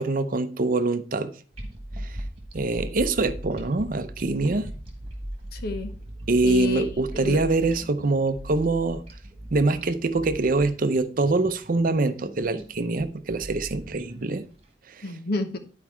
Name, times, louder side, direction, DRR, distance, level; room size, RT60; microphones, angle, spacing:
voice 1, 0.0-1.3 2.0-2.2 2.5-4.7 6.3-9.0 9.5-14.4, right 3 dB, 50° right, 0.6 m, -24 dB
sound 1, 1.5-14.6, right 1 dB, 35° right, 1.9 m, -39 dB
voice 2, 5.5-5.9 6.4-7.4 15.0-15.6, left 3 dB, 60° left, 1.0 m, -30 dB
10.5 x 4.8 x 4.5 m
head